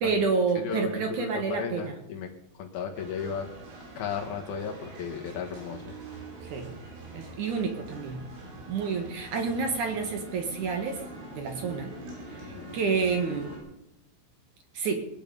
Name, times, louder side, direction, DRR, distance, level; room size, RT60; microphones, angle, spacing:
voice 1, 0.0-1.9 6.5-6.7 7.1-8.2 8.7-11.0 11.3-11.9 12.3-12.4 12.7-13.5 14.7-15.0, right 5 dB, 65° right, 5 dB, 2.1 m, -29 dB
voice 2, 0.6-3.5 4.0-5.9 12.4-12.8, left 6 dB, 70° left, 1 dB, 1.8 m, -35 dB
sound 1, 2.9-13.6, right 2 dB, 85° right, 6.1 m, -44 dB
20.5 x 9.3 x 5.3 m, 0.88 s
omnidirectional pair, 5.5 m